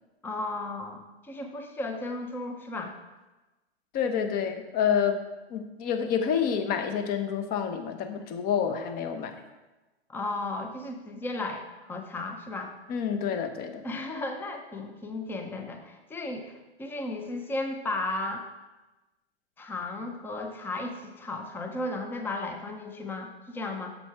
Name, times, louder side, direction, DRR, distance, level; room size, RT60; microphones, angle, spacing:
voice 1, 0.2-2.9 10.1-12.7 13.8-18.4 19.6-24.0, left 2 dB, 5° left, 4 dB, 0.6 m, -35 dB
voice 2, 3.9-5.2 5.5-9.3 12.9-13.8, left 7 dB, 30° left, 7 dB, 0.9 m, -28 dB
8.3 x 6.8 x 4.6 m, 1.1 s
hypercardioid pair, 120°, 32 cm